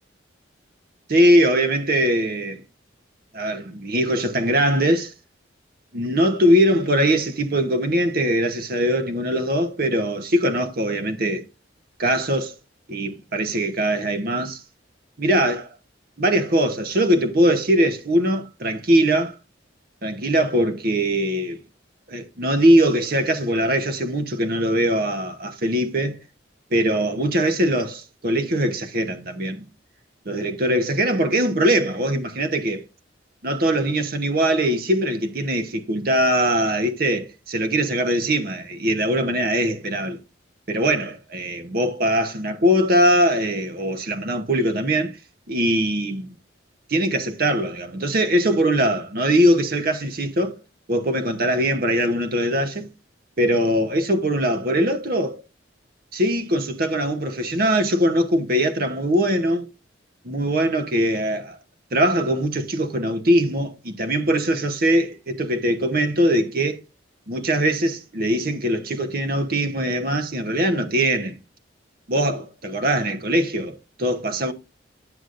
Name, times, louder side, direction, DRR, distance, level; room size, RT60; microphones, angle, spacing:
voice 1, 1.1-2.6 3.3-5.1 5.9-11.4 12.0-12.5 12.9-14.6 15.2-15.7 16.2-19.4 20.0-21.6 22.1-26.2 26.7-29.7 30.3-32.8 33.4-40.2 40.7-45.1 45.5-46.3 46.9-50.5 50.9-52.9 53.4-55.4 56.1-59.7 60.2-61.6 61.9-66.8 67.3-71.3 72.1-74.5, equal, 50° right, 0.9 m, -21 dB
8.9 x 7.9 x 2.5 m
head